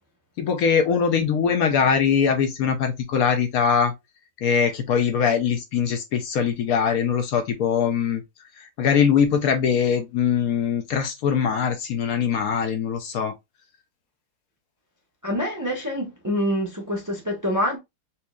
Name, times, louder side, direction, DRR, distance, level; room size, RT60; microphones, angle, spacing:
voice 1, 0.4-3.9 4.4-8.2 8.8-13.3, left 7 dB, 70° left, 0.9 m, -22 dB
voice 2, 15.2-17.8, equal, 30° right, 0.3 m, -26 dB
4.3 x 2.7 x 2.3 m
omnidirectional pair, 1.8 m